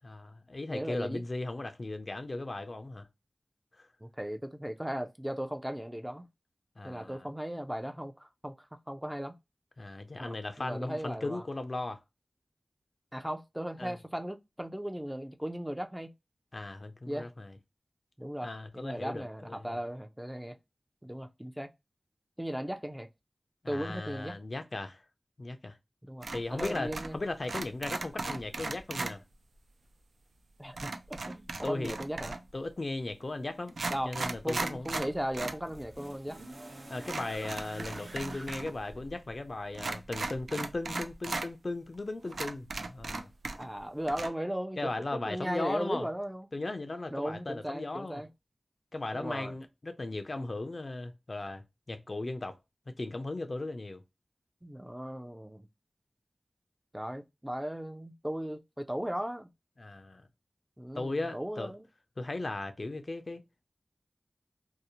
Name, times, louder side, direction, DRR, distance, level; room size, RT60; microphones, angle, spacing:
voice 1, 0.0-3.1 3.8-3.9 6.8-7.3 9.8-12.0 13.8-14.0 16.5-17.5 18.4-19.8 23.6-25.0 25.4-25.8 26.3-29.2 31.6-32.0 32.5-35.1 36.9-43.3 44.8-46.1 46.5-48.2 48.9-52.6 53.0-54.0 59.8-60.2 61.0-61.7 62.2-63.4, left 2 dB, 55° left, 0.4 m, -37 dB
voice 2, 0.7-1.2 4.0-6.3 6.8-8.6 8.9-9.3 10.2-11.4 13.1-16.1 17.1-17.3 18.2-20.6 21.0-21.7 22.4-23.1 23.7-24.3 26.1-27.2 30.6-32.3 33.9-34.2 34.4-36.4 43.6-46.5 47.1-48.3 49.1-49.5 54.6-55.7 56.9-59.5 60.8-61.8, equal, 10° right, 0.4 m, -37 dB
sound 1, 26.2-27.2 27.4-29.1 30.8-32.5 33.2-33.3 33.7-35.6 35.9-36.0 37.0-38.7 39.0-39.1 39.7-41.5 41.9-42.0 42.3-43.8 44.1-44.3, right 3 dB, 85° right, 0.3 m, -37 dB
sound 2, 34.7-39.8 40.9-41.0, right 1 dB, 60° right, 0.7 m, -48 dB
2.7 x 2.0 x 2.7 m
wide cardioid pair, 50°, 0 cm